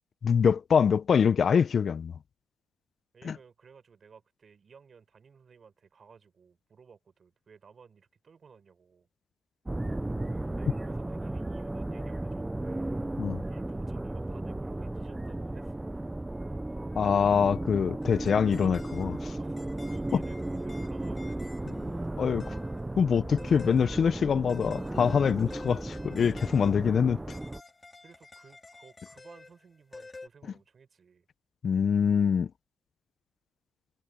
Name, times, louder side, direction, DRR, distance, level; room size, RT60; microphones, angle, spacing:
voice 1, 0.2-2.1 3.3-3.4 13.2-13.4 17.0-19.4 20.1-20.2 22.2-22.5 23.0-27.2 31.6-32.5, left 7 dB, 50° left, 0.5 m, -24 dB
voice 2, 3.1-9.1 10.5-13.1 13.5-15.9 19.4-21.9 28.0-31.3, right 6 dB, 45° right, 6.8 m, -56 dB
sound 1, 9.7-27.6, right 2 dB, 10° right, 0.4 m, -35 dB
sound 2, 18.0-30.3, left 3 dB, 25° left, 3.1 m, -50 dB
cardioid pair, 90°, 0 cm